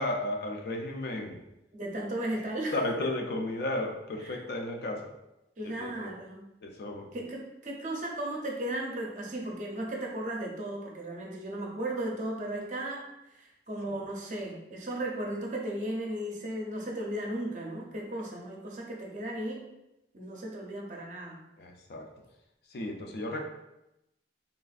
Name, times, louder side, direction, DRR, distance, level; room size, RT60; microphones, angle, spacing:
voice 1, 0.0-1.4 2.7-5.1 5.6-6.1 6.6-7.1 13.9-14.0 21.6-22.1 22.7-23.4, left 1 dB, 60° left, 2 dB, 0.4 m, -34 dB
voice 2, 1.7-2.8 4.2-4.4 5.6-6.4 7.1-19.6 20.1-21.4, right 1 dB, 45° right, -1 dB, 0.5 m, -35 dB
3.3 x 2.4 x 2.3 m, 0.92 s
head